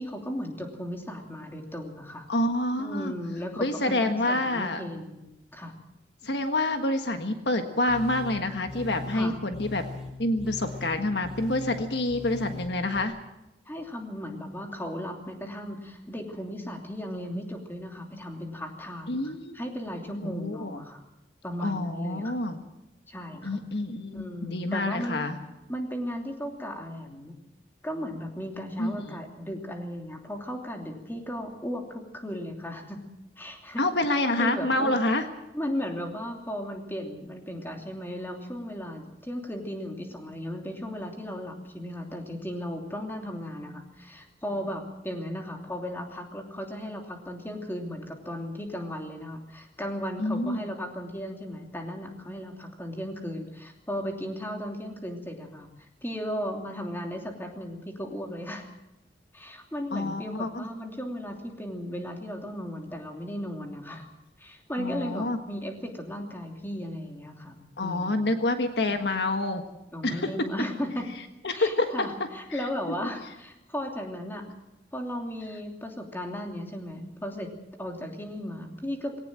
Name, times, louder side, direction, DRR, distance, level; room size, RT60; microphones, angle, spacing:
voice 1, 0.0-2.3 2.8-5.7 9.1-9.4 13.7-21.0 21.4-22.4 23.1-23.6 24.1-25.2 25.7-27.4 27.8-33.0 33.4-33.8 34.1-35.0 35.5-58.7 59.3-64.1 64.4-68.3 68.9-69.0 69.9-71.0 71.5-74.4 74.9-77.5 77.8-79.2, equal, 10° left, 2 dB, 2.9 m, -36 dB
voice 2, 2.3-3.1 3.6-4.8 6.2-9.8 10.2-13.1 19.1-19.6 20.2-20.8 21.6-22.6 23.4-25.4 28.8-29.2 33.8-35.3 50.2-50.6 59.9-60.7 64.8-65.4 67.8-69.6 70.0-70.5 71.4-72.1 72.5-72.7, left 2 dB, 65° left, 7 dB, 1.5 m, -27 dB
sound 1, 7.9-13.0, left 3 dB, 5° right, 4.9 m, -40 dB
20.0 x 18.0 x 7.7 m, 0.94 s
head